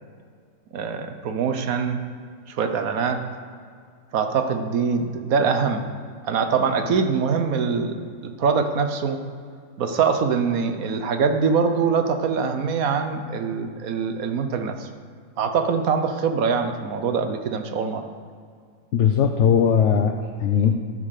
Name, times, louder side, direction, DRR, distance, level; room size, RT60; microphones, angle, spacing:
voice 1, 0.7-2.0 2.5-3.2 4.1-5.9 6.2-9.2 9.8-14.9 15.4-18.0, right 5 dB, 80° right, 7 dB, 1.3 m, -23 dB
voice 2, 18.9-20.7, left 7 dB, 65° left, 4 dB, 0.9 m, -19 dB
11.0 x 6.2 x 6.5 m, 2.1 s
omnidirectional pair, 1.5 m